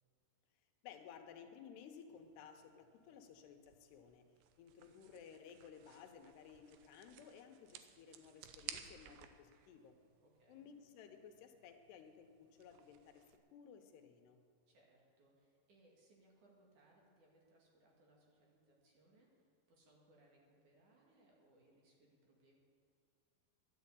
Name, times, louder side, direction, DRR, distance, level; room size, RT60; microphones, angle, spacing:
voice 1, 0.8-4.3 4.6-10.0 10.5-13.2 13.5-14.4, left 7 dB, 85° left, 6 dB, 3.0 m, -57 dB
sound 1, 2.1-13.4, right 10 dB, 80° right, 2.7 m, -58 dB
voice 2, 10.2-10.7 14.7-22.6, right 1 dB, 55° right, -2 dB, 3.2 m, -70 dB
11.5 x 10.5 x 8.2 m, 2.3 s
omnidirectional pair, 4.8 m